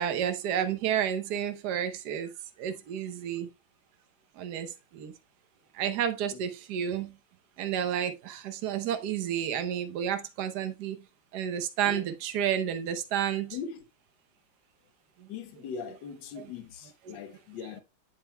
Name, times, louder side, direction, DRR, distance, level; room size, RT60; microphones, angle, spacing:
voice 1, 0.0-2.3 2.6-3.5 4.4-5.1 5.7-7.1 7.6-11.0 11.3-13.6 15.2-15.3 17.1-17.2, right 9 dB, 60° right, 1.2 m, -31 dB
voice 2, 13.5-13.8 15.3-17.8, left 6 dB, 60° left, 1.6 m, -40 dB
8.8 x 7.5 x 2.2 m
omnidirectional pair, 2.4 m